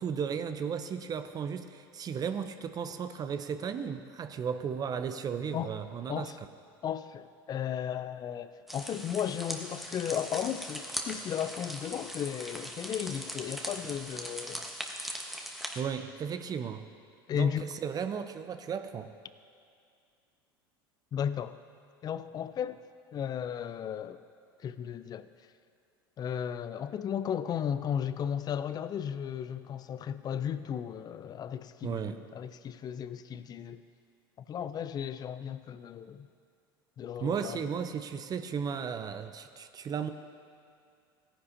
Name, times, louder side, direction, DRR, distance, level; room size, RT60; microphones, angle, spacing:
voice 1, 0.0-6.3 15.7-16.9 17.3-19.1 31.8-32.2 37.2-40.1, right 7 dB, 30° right, 10 dB, 0.6 m, -35 dB
voice 2, 6.8-14.6 17.3-17.7 21.1-21.6 22.0-22.8 23.1-24.2 24.6-25.3 26.2-33.8 34.5-36.3 37.0-37.6, left 8 dB, 35° left, 13 dB, 0.5 m, -35 dB
sound 1, 8.7-15.8, equal, ahead, 1.2 m, -40 dB
16.5 x 9.9 x 2.8 m, 2.3 s
hypercardioid pair, 75°, 12 cm